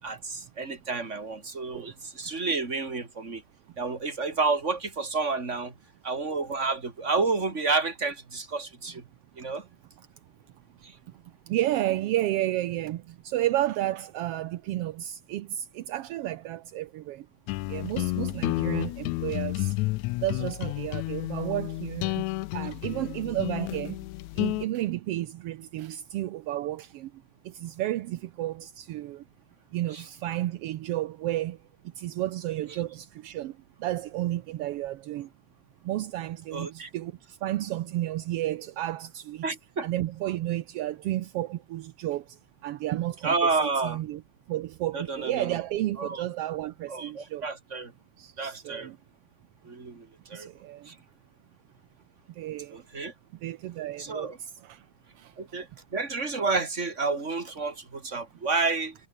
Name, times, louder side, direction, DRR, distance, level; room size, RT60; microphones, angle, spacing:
voice 1, 0.0-3.4 3.8-5.7 6.0-9.0 9.4-9.6 10.8-10.9 29.9-30.0 36.5-36.9 39.4-39.9 43.2-44.0 44.9-45.6 46.0-46.2 46.9-47.9 48.4-48.9 49.6-50.5 50.8-50.9 52.7-53.1 54.0-54.4 55.4-59.0, right 4 dB, 25° right, 3.3 m, -30 dB
voice 2, 11.2-17.3 17.7-19.8 20.2-22.2 22.5-24.0 24.3-29.2 29.7-31.6 31.8-35.3 35.8-39.4 39.8-44.2 44.5-47.5 48.2-49.0 50.3-50.9 52.3-52.8 53.4-54.9 55.1-55.3, right 14 dB, 75° right, 1.4 m, -32 dB
sound 1, 17.5-24.7, left 21 dB, 80° left, 1.7 m, -31 dB
omnidirectional pair, 3.5 m